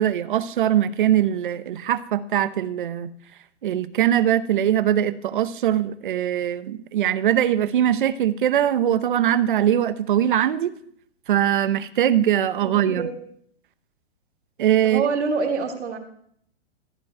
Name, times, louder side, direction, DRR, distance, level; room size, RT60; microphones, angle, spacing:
voice 1, 0.0-3.1 3.6-10.7 11.3-13.1 14.6-15.1, right 11 dB, 45° right, 14 dB, 0.8 m, -21 dB
voice 2, 12.6-13.2 14.8-16.0, right 5 dB, 80° right, 4 dB, 3.2 m, -26 dB
15.0 x 5.3 x 9.8 m, 0.66 s
hypercardioid pair, 175°, 34 cm